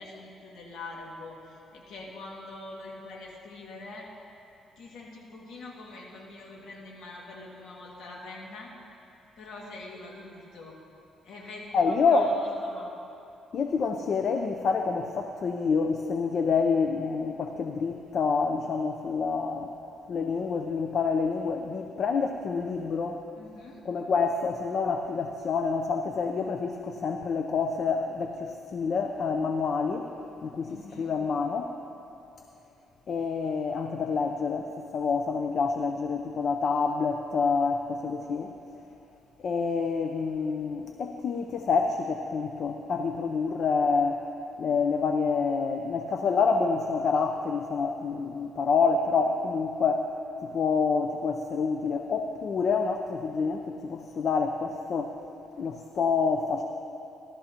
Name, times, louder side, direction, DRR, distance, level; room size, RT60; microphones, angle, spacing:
voice 1, 0.0-4.1 4.8-8.7 9.4-10.8 11.2-12.9 23.3-23.8 30.7-31.1, left 2 dB, 75° left, -2 dB, 2.1 m, -44 dB
voice 2, 11.7-12.3 13.5-19.7 20.1-23.2 23.8-30.1 30.4-31.7 33.1-38.5 39.4-44.2 44.6-50.1 50.4-55.1 55.6-56.6, left 5 dB, 55° left, 4 dB, 0.6 m, -27 dB
17.0 x 12.5 x 2.9 m, 2.8 s
cardioid pair, 90°, 0 cm